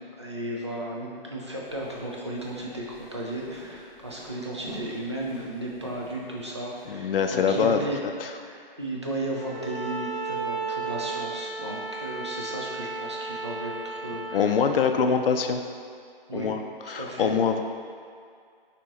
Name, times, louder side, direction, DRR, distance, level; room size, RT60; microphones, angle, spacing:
voice 1, 0.0-8.0 8.4-14.7 16.3-16.5 16.9-17.3, right 1 dB, 30° right, -3 dB, 0.4 m, -35 dB
sound 1, 1.6-6.8, right 1 dB, 5° left, 0.7 m, -47 dB
voice 2, 6.9-7.8 14.3-15.6 16.3-16.6 16.9-17.6, left 6 dB, 70° left, 6 dB, 0.4 m, -23 dB
Bowed string instrument, 9.4-14.4, right 3 dB, 75° right, 1.1 m, -34 dB
6.1 x 2.9 x 2.9 m, 2.2 s
hypercardioid pair, 175°, 29 cm